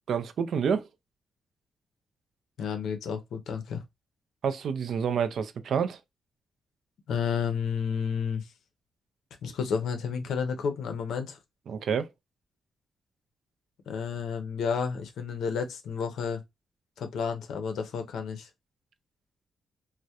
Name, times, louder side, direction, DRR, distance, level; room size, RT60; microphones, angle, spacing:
voice 1, 0.1-0.9 4.4-6.0 11.7-12.1, right 7 dB, 70° right, 0.3 m, -28 dB
voice 2, 2.6-3.8 7.1-8.5 9.4-11.4 13.9-16.4 17.0-18.5, left 6 dB, 80° left, 0.5 m, -31 dB
2.2 x 2.0 x 2.7 m
cardioid pair, 75°, 0 cm